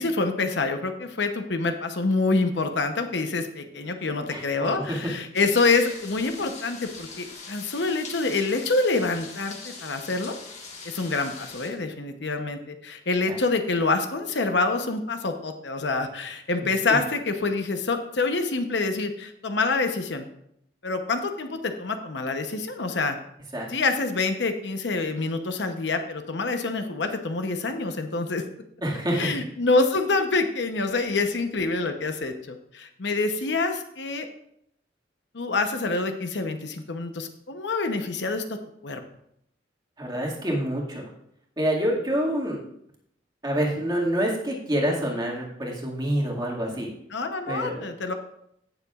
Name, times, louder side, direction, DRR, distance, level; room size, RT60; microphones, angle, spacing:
voice 1, 0.0-10.3 10.8-20.3 20.8-23.2 23.7-28.4 29.2-34.3 35.3-38.6 38.8-39.0 47.1-48.1, left 3 dB, 70° left, 6 dB, 0.8 m, -26 dB
voice 2, 4.3-5.1 13.3-13.4 23.5-23.7 28.8-29.3 40.0-41.0 41.6-42.6 43.4-46.9 47.5-47.8, equal, 20° right, -3 dB, 2.0 m, -27 dB
sound 1, 5.3-11.7, left 4 dB, 40° left, 1.6 m, -42 dB
17.0 x 6.9 x 2.4 m, 0.74 s
head